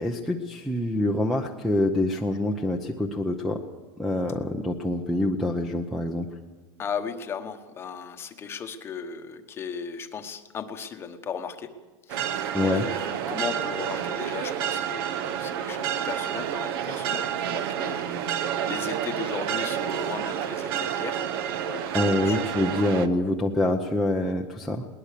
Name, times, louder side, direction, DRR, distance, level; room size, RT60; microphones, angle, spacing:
voice 1, 0.0-3.6 4.0-6.3 12.5-12.9 21.9-24.9, left 1 dB, ahead, -2 dB, 0.7 m, -26 dB
voice 2, 6.8-11.8 12.0-21.2 21.5-22.4, left 6 dB, 15° left, 7 dB, 1.1 m, -36 dB
sound 1, 12.1-23.1, right 9 dB, 50° right, 1.0 m, -29 dB
20.5 x 19.5 x 6.7 m, 1.3 s
supercardioid pair, 175°, 15 cm